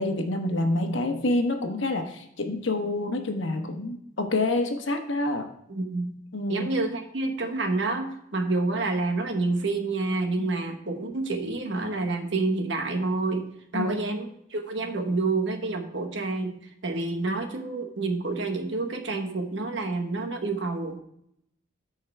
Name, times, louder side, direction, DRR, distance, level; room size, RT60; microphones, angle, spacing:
voice 1, 0.0-5.5 6.3-6.7 10.4-10.5 13.7-13.9, left 2 dB, 70° left, 5 dB, 1.1 m, -27 dB
voice 2, 5.7-6.1 6.5-16.5 16.8-21.0, right 3 dB, 60° right, 5 dB, 1.1 m, -28 dB
13.5 x 4.7 x 3.3 m, 0.74 s
head